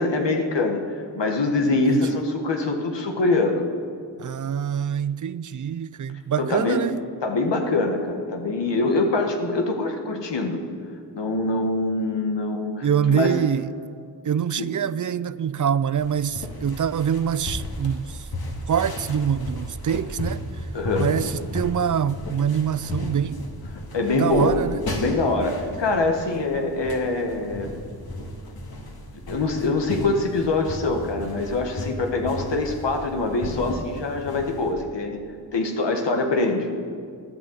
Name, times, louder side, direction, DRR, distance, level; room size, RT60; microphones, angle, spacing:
voice 1, 0.0-3.7 6.4-6.8 7.2-10.6 11.1-13.4 14.6-14.7 20.7-21.1 23.9-24.6 25.0-27.8 29.3-35.2 35.5-36.7, left 2 dB, 70° left, 1.6 m, -24 dB
voice 2, 4.2-7.0 12.8-13.7 14.2-18.3 18.7-20.7 21.0-23.4 24.1-24.8, right 8 dB, 45° right, 0.5 m, -25 dB
sound 1, 16.0-34.7, left 1 dB, 55° left, 2.2 m, -34 dB
15.0 x 10.0 x 8.0 m
cardioid pair, 70°, 44 cm